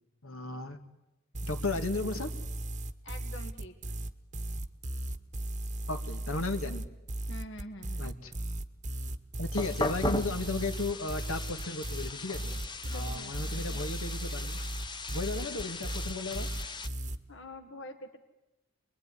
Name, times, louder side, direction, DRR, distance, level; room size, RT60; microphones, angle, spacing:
voice 1, 0.2-0.8 1.4-2.3 5.9-6.9 8.0-8.3 9.4-12.6 12.9-14.6 15.1-16.5, left 2 dB, 75° left, 6 dB, 1.9 m, -35 dB
sound 1, 1.3-17.2, right 1 dB, 35° right, 1.2 m, -36 dB
voice 2, 3.0-3.8 7.3-8.1 12.8-13.8 17.3-18.2, left 1 dB, 60° left, 5 dB, 1.6 m, -46 dB
sound 2, 9.5-16.9, left 2 dB, 20° left, 1.0 m, -38 dB
28.0 x 21.5 x 9.9 m, 0.99 s
head